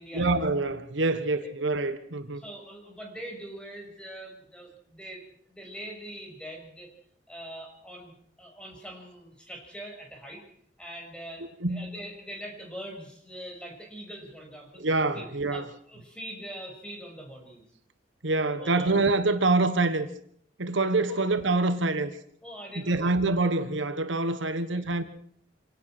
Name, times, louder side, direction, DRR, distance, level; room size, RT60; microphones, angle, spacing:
voice 1, 0.1-2.4 11.6-11.9 14.8-15.7 18.2-20.1 20.6-22.1 22.9-25.0, right 2 dB, 75° right, 1.4 m, -26 dB
voice 2, 2.3-5.2 5.5-6.9 7.3-10.4 10.8-14.8 15.1-17.6 18.6-18.9 21.1-21.2 22.4-23.1 24.7-24.8, right 1 dB, 5° left, 6.5 m, -43 dB
26.5 x 18.0 x 6.1 m
head